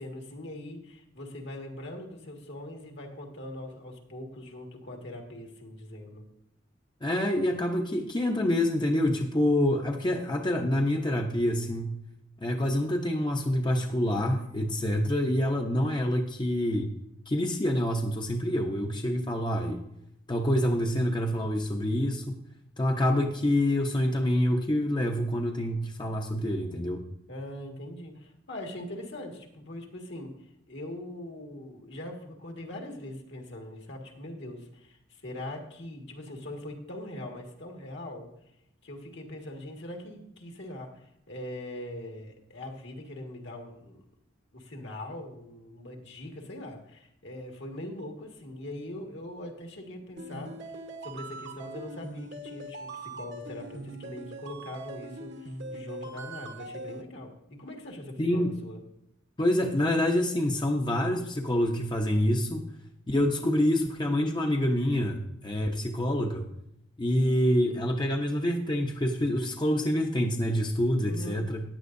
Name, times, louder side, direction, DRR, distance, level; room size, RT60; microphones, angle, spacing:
voice 1, 0.0-6.2 27.3-30.3 30.7-38.3 38.8-44.0 44.5-50.5 51.0-58.8 71.1-71.4, left 1 dB, 65° left, 2 dB, 1.9 m, -41 dB
voice 2, 7.0-11.9 12.4-16.9 17.3-19.8 20.3-22.4 22.8-27.0 58.2-58.5 59.4-62.6 63.1-66.4 67.0-71.6, left 1 dB, 25° left, 2 dB, 0.8 m, -26 dB
sound 1, 50.2-57.0, right 2 dB, 65° right, 1.2 m, -41 dB
15.0 x 10.0 x 2.6 m, 0.78 s
head